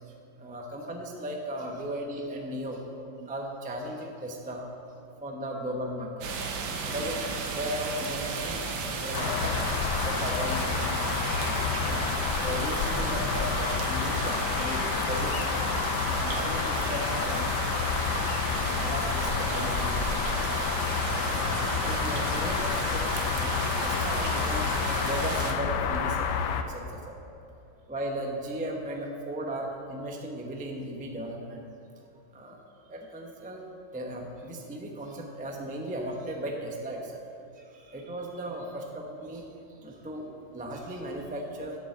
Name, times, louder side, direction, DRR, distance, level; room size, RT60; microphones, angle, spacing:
voice 1, 0.4-2.8 3.2-4.7 5.2-6.3 6.9-7.2 7.5-8.6 9.0-9.5 10.1-11.0 11.8-12.0 12.4-15.3 15.9-17.5 18.8-19.9 21.3-26.3 26.6-27.1 27.9-31.6 32.3-32.6 32.9-33.6 33.9-37.2 37.9-39.4 39.8-41.8, right 1 dB, 10° right, 1 dB, 0.4 m, -36 dB
sound 1, 6.2-25.5, right 4 dB, 80° right, 1.7 m, -33 dB
sound 2, 9.1-26.6, left 6 dB, 70° left, 1.2 m, -29 dB
8.0 x 7.1 x 7.8 m, 2.7 s
omnidirectional pair, 2.1 m